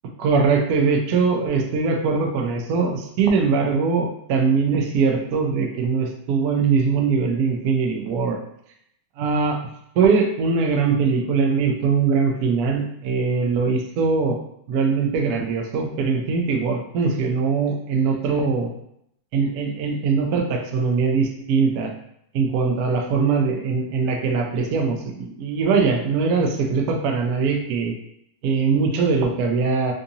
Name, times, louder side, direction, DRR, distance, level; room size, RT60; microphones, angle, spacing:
voice 1, 0.2-8.4 9.2-9.6 10.0-14.4 14.7-18.7 19.3-21.9 22.3-27.9 28.4-29.9, right 5 dB, 80° right, 2 dB, 0.8 m, -21 dB
3.6 x 2.6 x 2.7 m, 0.73 s
omnidirectional pair, 2.2 m